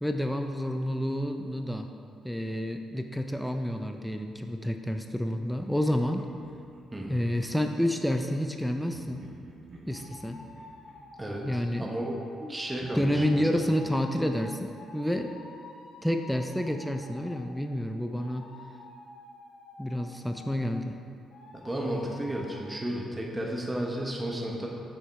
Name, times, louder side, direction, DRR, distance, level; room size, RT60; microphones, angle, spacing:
voice 1, 0.0-1.9 2.2-6.3 7.1-9.2 9.9-10.4 11.4-11.9 12.4-12.6 12.9-15.3 16.0-18.5 19.8-21.0, equal, ahead, 5 dB, 0.5 m, -29 dB
Laughter, 5.6-7.7 8.9-12.4 12.8-15.5, right 1 dB, 65° right, 1.6 m, -53 dB
voice 2, 6.9-7.2 11.2-12.2 12.5-13.7 21.5-24.7, right 1 dB, 15° right, -2 dB, 1.2 m, -33 dB
sound 1, 9.9-17.5 18.1-20.8 21.3-22.7, left 3 dB, 70° left, 1.1 m, -49 dB
6.5 x 6.3 x 4.7 m, 2.4 s
cardioid pair, 90°, 0 cm